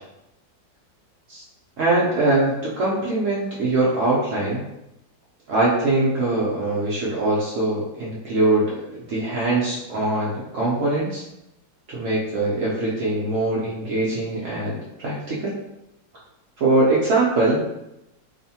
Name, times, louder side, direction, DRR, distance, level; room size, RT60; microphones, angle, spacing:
voice 1, 1.8-4.7 5.5-11.2 11.9-15.5 16.6-17.6, right 2 dB, 85° right, -6 dB, 0.6 m, -22 dB
3.0 x 2.1 x 2.7 m, 0.89 s
omnidirectional pair, 2.0 m